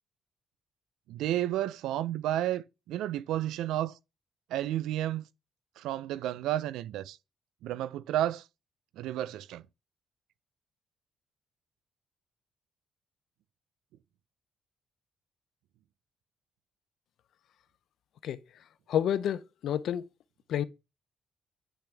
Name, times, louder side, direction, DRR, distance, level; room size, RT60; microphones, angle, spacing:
voice 1, 1.1-4.0 4.5-5.2 5.8-7.2 7.6-8.4 9.0-9.6, right 13 dB, 90° right, 0.3 m, -31 dB
voice 2, 18.9-20.1 20.5-20.6, left 10 dB, 75° left, 0.5 m, -29 dB
10.0 x 3.4 x 3.3 m
cardioid pair, 90°, 0 cm